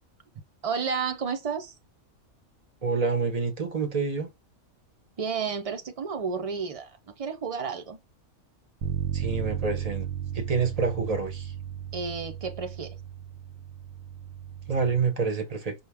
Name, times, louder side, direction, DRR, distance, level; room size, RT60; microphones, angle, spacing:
voice 1, 0.6-1.7 5.2-6.9 7.2-8.0 11.9-12.9, right 5 dB, 70° right, 0.3 m, -31 dB
voice 2, 2.8-4.3 9.1-10.1 10.3-11.5 14.7-15.7, right 4 dB, 35° right, 0.7 m, -27 dB
Bass guitar, 8.8-15.1, right 9 dB, 90° right, 1.1 m, -35 dB
5.5 x 2.2 x 3.4 m
omnidirectional pair, 1.5 m